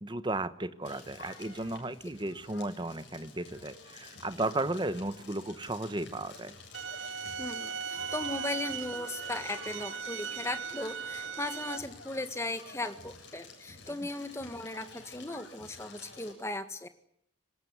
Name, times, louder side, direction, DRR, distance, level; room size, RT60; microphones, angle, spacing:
voice 1, 0.0-6.6 13.9-14.0, right 2 dB, 25° right, 13 dB, 1.1 m, -34 dB
Crackle, 0.8-16.3, left 3 dB, 60° left, 7.6 m, -50 dB
sound 1, 6.7-11.8, right 6 dB, 75° right, 1.0 m, -38 dB
voice 2, 7.4-16.9, left 2 dB, 15° left, 9 dB, 1.7 m, -37 dB
25.0 x 20.0 x 9.6 m, 0.72 s
head